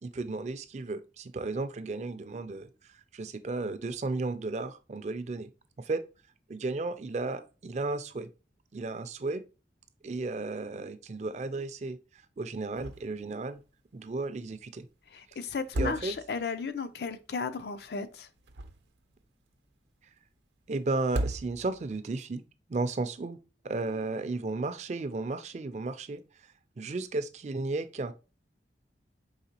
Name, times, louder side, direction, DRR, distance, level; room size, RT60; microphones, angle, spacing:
voice 1, 0.0-2.7 3.1-5.5 5.8-6.0 6.5-8.3 8.7-9.4 10.0-12.0 12.4-13.6 13.9-14.9 15.7-16.2 20.7-22.4 22.7-23.4 23.6-26.2 26.8-28.1, right 3 dB, 40° right, 0.4 m, -34 dB
sound 1, 12.8-13.3 13.6-13.7 15.5-16.5 18.2-19.1 21.0-21.9, right 1 dB, 80° right, 0.6 m, -35 dB
voice 2, 15.1-18.3, left 5 dB, 65° left, 0.5 m, -34 dB
4.8 x 3.6 x 2.8 m
head